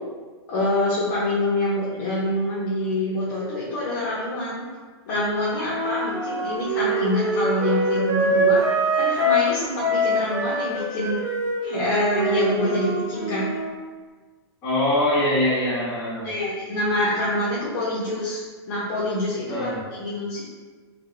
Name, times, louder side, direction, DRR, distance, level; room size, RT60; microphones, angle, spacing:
voice 1, 0.5-4.7 5.1-8.6 8.9-11.2 11.6-13.5 16.2-18.4 18.7-20.4, left 1 dB, 45° left, -8 dB, 0.8 m, -25 dB
Wind instrument woodwind instrument, 5.5-9.5 9.8-13.7, right 1 dB, 45° right, 0.8 m, -24 dB
voice 2, 14.6-16.3 19.5-19.8, left 1 dB, 25° left, -9 dB, 1.5 m, -23 dB
4.1 x 2.2 x 3.2 m, 1.4 s
supercardioid pair, 170°, 14 cm